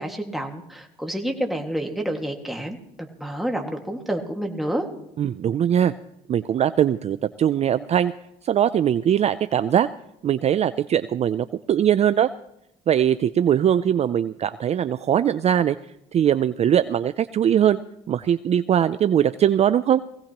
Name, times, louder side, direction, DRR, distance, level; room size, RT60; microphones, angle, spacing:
voice 1, 0.0-4.9, right 1 dB, ahead, 2 dB, 1.9 m, -29 dB
voice 2, 5.2-5.9 6.3-8.1 8.4-9.9 10.2-12.3 12.9-15.8 16.1-17.8 18.1-20.0, right 10 dB, 40° right, 13 dB, 0.4 m, -21 dB
20.5 x 16.5 x 2.9 m, 0.79 s
cardioid pair, 110°, 17 cm